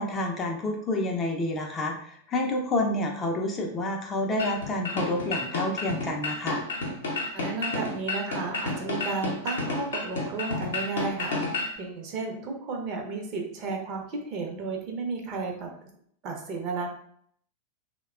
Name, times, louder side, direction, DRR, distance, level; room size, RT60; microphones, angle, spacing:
voice 1, 0.0-6.6, left 1 dB, 20° left, 1 dB, 0.5 m, -29 dB
sound 1, 4.4-11.8, left 2 dB, 65° left, 0.6 m, -31 dB
voice 2, 7.3-15.7 16.2-16.9, right 4 dB, 40° right, 1 dB, 0.6 m, -33 dB
3.4 x 2.1 x 2.3 m, 0.66 s
figure-of-eight pair, 90°, 0 cm